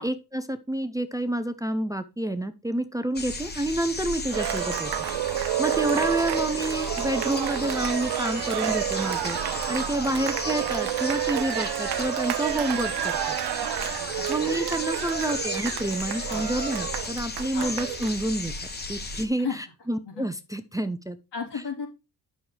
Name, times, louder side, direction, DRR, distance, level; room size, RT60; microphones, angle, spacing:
voice 1, 0.0-4.9 5.6-9.4 9.7-13.3 14.3-18.5 18.9-21.2, right 1 dB, 10° right, 9 dB, 0.5 m, -29 dB
sound 1, 3.2-19.3, left 3 dB, 25° left, 1.0 m, -35 dB
Cheering, 4.3-18.2, right 13 dB, 75° right, 0.5 m, -29 dB
voice 2, 5.7-6.1 10.0-10.2 14.1-14.6 16.3-16.4 17.5-17.7 19.4-19.6 20.1-20.3 21.3-21.9, left 6 dB, 85° left, -2 dB, 3.9 m, -35 dB
9.6 x 6.3 x 3.4 m, 0.28 s
wide cardioid pair, 155°, 40 cm